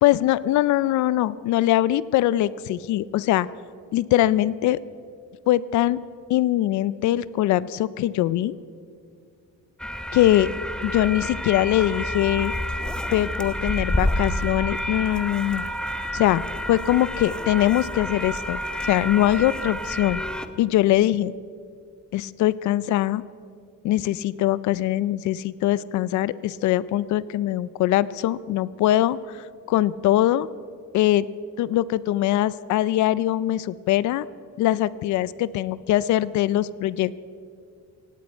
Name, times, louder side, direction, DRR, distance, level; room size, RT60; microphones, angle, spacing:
voice 1, 0.0-3.5 3.9-4.8 5.5-6.0 6.3-8.5 10.1-10.5 10.8-12.5 13.1-15.7 16.1-16.4 16.7-20.2 20.6-21.3 22.1-23.2 23.8-30.5 30.9-31.3 31.6-34.3 34.6-37.2, left 14 dB, 65° left, 19 dB, 0.5 m, -22 dB
sound 1, 9.8-20.5, equal, 5° left, 0.5 m, -29 dB
17.5 x 17.0 x 4.4 m, 2.3 s
cardioid pair, 165°, 32 cm